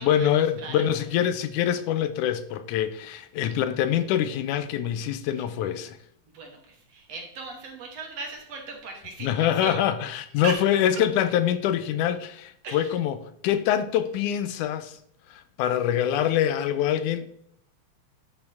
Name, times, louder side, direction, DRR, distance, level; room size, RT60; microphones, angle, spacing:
voice 1, 0.0-6.0 9.2-13.2 13.4-15.0 15.3-17.3, left 10 dB, 90° left, 2.1 m, -25 dB
voice 2, 6.3-9.8 10.4-10.6 12.6-12.9, right 4 dB, 60° right, 2.3 m, -37 dB
11.0 x 5.2 x 3.5 m
omnidirectional pair, 3.5 m